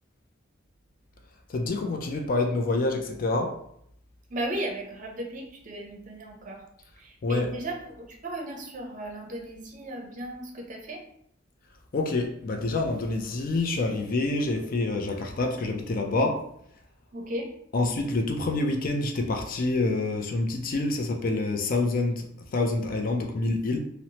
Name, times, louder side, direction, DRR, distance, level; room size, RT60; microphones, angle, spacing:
voice 1, 1.5-3.6 7.2-7.5 11.9-16.4 17.7-22.2 22.5-23.8, left 2 dB, 50° left, 3 dB, 0.4 m, -27 dB
voice 2, 4.3-6.6 7.0-11.0 17.1-17.5, right 1 dB, 45° right, 1 dB, 0.5 m, -36 dB
2.9 x 2.0 x 2.7 m, 0.71 s
head